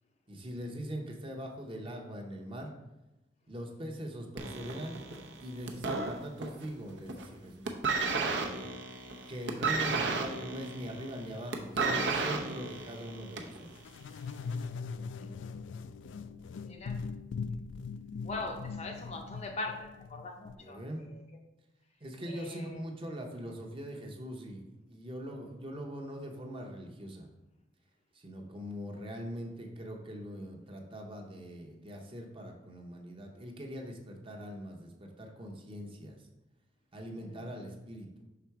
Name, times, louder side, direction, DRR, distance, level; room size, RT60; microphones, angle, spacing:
voice 1, 0.3-2.7 3.5-5.0 5.4-7.7 8.2-8.6 9.3-13.7 20.6-21.1 22.0-27.3 28.1-36.2 36.9-38.2, equal, 30° right, 2 dB, 0.8 m, -42 dB
sound 1, 4.4-6.7 7.0-7.4 7.6-13.6 14.4-14.5, right 4 dB, 70° right, 0.7 m, -33 dB
sound 2, 13.8-20.6, left 5 dB, 85° left, 0.3 m, -40 dB
voice 2, 15.2-15.8 16.6-17.0 18.2-21.2 22.3-22.8 37.1-37.5, left 2 dB, 35° left, 3 dB, 0.6 m, -42 dB
5.9 x 3.8 x 4.6 m, 0.98 s
head